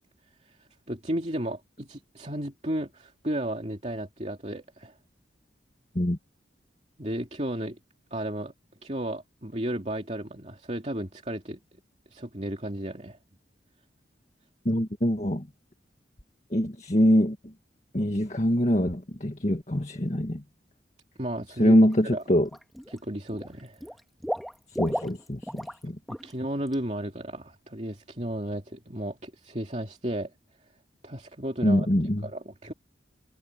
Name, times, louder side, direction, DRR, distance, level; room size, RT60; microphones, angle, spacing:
voice 1, 0.9-5.0 7.0-7.8 8.1-8.5 8.8-11.6 12.1-13.2 21.2-21.8 22.1-22.2 22.9-23.9 26.2-30.3 31.0-31.9 32.2-32.7, right 1 dB, 35° right, 2.7 m, -33 dB
voice 2, 14.7-15.5 16.5-17.4 17.9-20.4 21.6-22.5 24.8-26.0 31.6-32.3, equal, 40° left, 1.9 m, -24 dB
Water / Liquid, 21.8-21.9 22.3-23.0 23.3-25.8 26.1-26.3 26.7-26.8, equal, ahead, 1.6 m, -35 dB
head